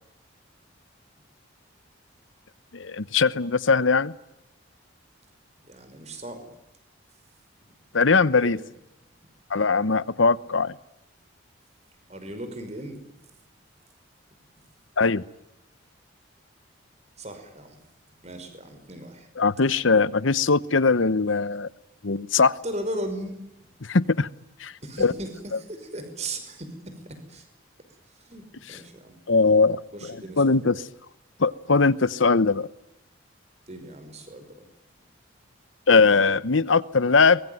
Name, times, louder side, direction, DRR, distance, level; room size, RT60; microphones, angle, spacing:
voice 1, 2.7-4.1 7.9-8.6 9.5-10.7 15.0-15.2 19.4-21.7 22.0-22.6 23.8-24.3 24.6-24.7 25.0-25.1 29.3-29.8 30.4-30.8 31.4-32.7 35.9-37.4, left 4 dB, 75° left, 18 dB, 1.0 m, -20 dB
voice 2, 5.7-6.5 7.6-7.8 8.4-8.6 12.1-13.0 17.2-17.8 18.2-19.3 22.6-23.4 24.8-27.5 28.1-29.2 29.9-30.7 33.7-34.6, right 1 dB, 35° right, 9 dB, 5.5 m, -37 dB
23.5 x 22.0 x 9.5 m, 0.87 s
head